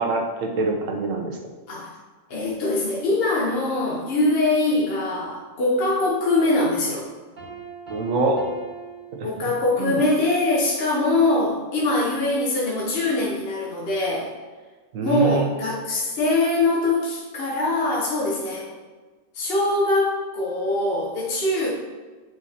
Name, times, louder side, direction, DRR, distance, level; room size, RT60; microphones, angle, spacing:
voice 1, 0.0-1.4 7.9-8.5 9.1-9.3 9.8-10.0 14.9-15.5, right 3 dB, 85° right, 2 dB, 1.3 m, -25 dB
voice 2, 2.3-7.1 9.2-14.3 15.0-18.7 19.3-21.7, left 2 dB, 50° left, -4 dB, 1.1 m, -23 dB
Piano, 7.4-9.9, right 5 dB, 40° right, 1.6 m, -41 dB
7.9 x 5.1 x 2.8 m, 1.3 s
omnidirectional pair, 1.3 m